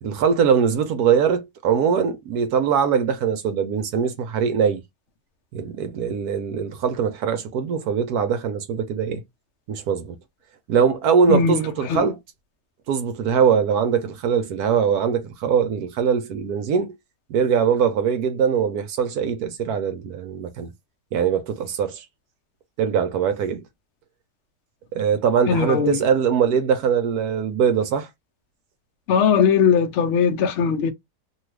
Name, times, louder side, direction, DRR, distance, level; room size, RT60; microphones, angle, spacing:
voice 1, 0.0-4.8 5.5-9.2 9.7-10.2 10.7-12.2 12.9-16.9 17.3-20.7 21.1-22.1 22.8-23.6 24.9-28.1, right 7 dB, 70° right, 1.0 m, -22 dB
voice 2, 11.3-11.6 11.9-12.0 25.5-26.0 29.1-30.9, left 6 dB, 65° left, 0.7 m, -19 dB
2.8 x 2.3 x 3.1 m
omnidirectional pair, 1.9 m